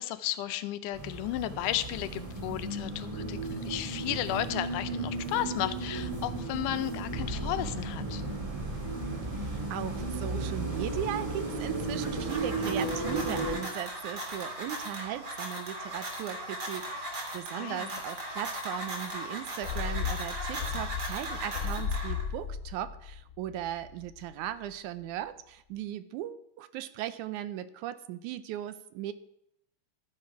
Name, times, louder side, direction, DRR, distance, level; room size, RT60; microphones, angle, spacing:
voice 1, 0.0-8.2 17.5-18.0, left 14 dB, 85° left, 12 dB, 2.2 m, -34 dB
sound 1, 0.9-13.6, right 2 dB, 10° right, 1.9 m, -34 dB
voice 2, 9.2-29.1, right 12 dB, 80° right, 13 dB, 2.0 m, -38 dB
sound 2, 12.0-22.4, right 1 dB, 35° right, 2.9 m, -38 dB
sound 3, 19.6-24.2 24.5-24.6, left 7 dB, 50° left, 1.7 m, -35 dB
13.5 x 9.7 x 4.7 m, 0.76 s
omnidirectional pair, 3.7 m